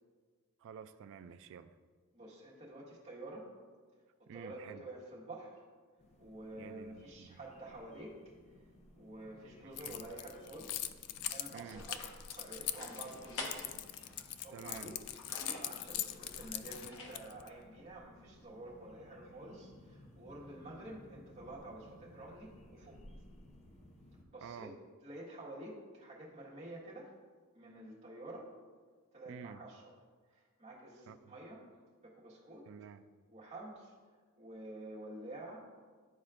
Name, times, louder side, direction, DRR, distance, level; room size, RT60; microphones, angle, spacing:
voice 1, 0.6-1.7 4.3-4.8 6.6-7.4 9.7-10.0 11.5-11.8 14.5-15.0 24.4-24.7 29.3-29.6 31.1-31.3 32.7-33.0, right 7 dB, 60° right, 11 dB, 0.3 m, -50 dB
voice 2, 2.1-3.5 4.2-5.6 6.2-8.2 8.9-10.9 11.3-12.0 12.3-13.7 14.4-15.2 15.5-23.0 24.3-24.7 25.0-27.1 27.5-28.5 29.1-29.9 30.3-31.7 32.0-32.7 33.3-34.0 34.4-35.6, right 1 dB, 30° right, -6 dB, 1.6 m, -49 dB
sound 1, 6.0-24.2, left 1 dB, 30° left, 0.7 m, -59 dB
Keys jangling, 9.8-17.5, left 12 dB, 85° left, 0.3 m, -41 dB
sound 2, 11.1-17.1, left 2 dB, 70° left, 1.1 m, -49 dB
11.0 x 4.2 x 2.5 m, 1.5 s
head